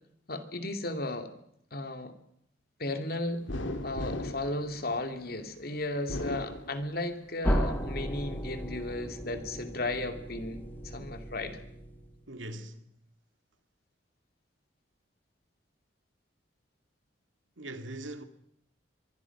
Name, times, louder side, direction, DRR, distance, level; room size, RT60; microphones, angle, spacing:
voice 1, 0.3-1.3 1.7-2.1 2.8-3.5 3.8-11.5, left 2 dB, 50° left, 2.5 m, -35 dB
sound 1, 3.5-5.4 5.9-7.3 7.7-8.6, left 1 dB, 85° left, 2.2 m, -38 dB
sound 2, 7.4-12.2, equal, 10° left, 2.5 m, -34 dB
voice 2, 12.3-12.8 17.6-18.2, right 1 dB, 85° right, 2.2 m, -41 dB
24.5 x 23.0 x 6.0 m
head